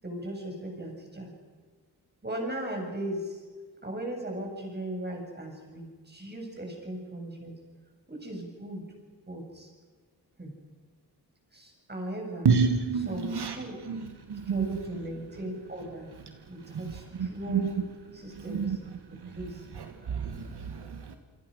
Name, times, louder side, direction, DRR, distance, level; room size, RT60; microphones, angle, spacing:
voice 1, 0.0-1.3 2.2-3.4 3.8-7.5 8.1-8.8 9.3-9.7 10.4-10.5 11.5-12.5 12.9-13.8 14.4-16.1 16.5-17.8 18.1-18.8 19.3-19.7, right 1 dB, 25° right, 1 dB, 7.2 m, -37 dB
voice 2, 12.5-13.6 13.9-14.0 14.3-14.7 17.2-17.3 17.5-17.6 18.5-18.8 20.1-21.2, right 5 dB, 80° right, 6 dB, 1.9 m, -27 dB
28.0 x 24.5 x 6.5 m, 1.5 s
wide cardioid pair, 115°, 40 cm